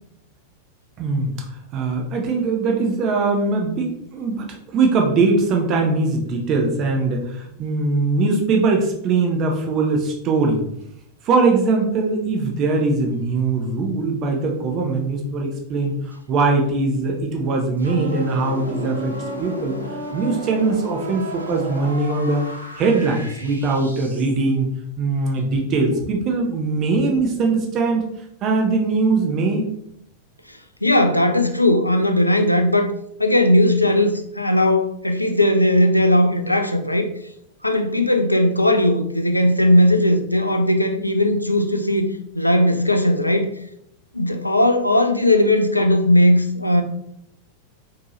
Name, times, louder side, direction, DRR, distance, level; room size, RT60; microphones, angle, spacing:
voice 1, 1.0-1.5 1.7-4.5 4.7-10.6 11.2-19.1 19.4-19.8 20.1-24.7 25.0-28.0 28.4-29.7, right 3 dB, 35° right, 1 dB, 0.7 m, -21 dB
sound 1, 17.8-24.5, right 1 dB, 85° right, 0.6 m, -33 dB
voice 2, 30.8-32.9 33.2-37.1 37.6-42.1 42.3-43.5 44.1-46.8, left 1 dB, 85° left, 6 dB, 0.4 m, -17 dB
4.4 x 2.8 x 3.0 m, 0.74 s
figure-of-eight pair, 90°, 0 cm